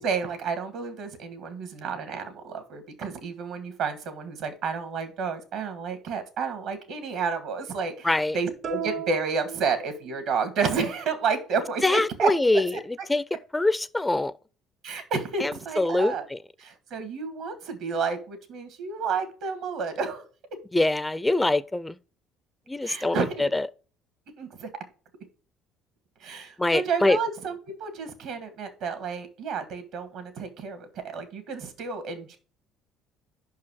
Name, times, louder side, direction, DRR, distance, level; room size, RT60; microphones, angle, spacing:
voice 1, 0.0-8.1 8.3-12.3 12.7-12.8 14.8-16.3 16.6-20.3 22.8-23.4 24.4-24.7 26.2-32.4, right 5 dB, 70° right, 1.8 m, -30 dB
voice 2, 8.0-8.4 11.8-12.7 13.1-13.2 13.5-14.3 15.4-16.4 20.7-22.0 22.7-23.7 26.6-27.2, left 2 dB, 10° left, 0.4 m, -24 dB
sound 1, 8.6-10.4, right 8 dB, 50° right, 0.5 m, -36 dB
5.6 x 4.7 x 5.9 m
supercardioid pair, 85°, 0 cm